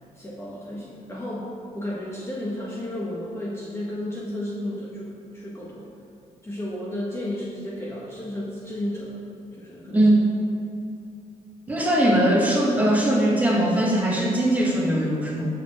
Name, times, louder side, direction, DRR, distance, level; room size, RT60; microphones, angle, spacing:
voice 1, 0.1-5.9 6.4-9.2 9.5-10.1, left 1 dB, 20° left, -6 dB, 1.5 m, -33 dB
voice 2, 9.9-10.3 11.7-15.5, right 1 dB, 10° right, -5 dB, 2.5 m, -20 dB
17.5 x 6.7 x 3.7 m, 2.5 s
cardioid pair, 125°, 15 cm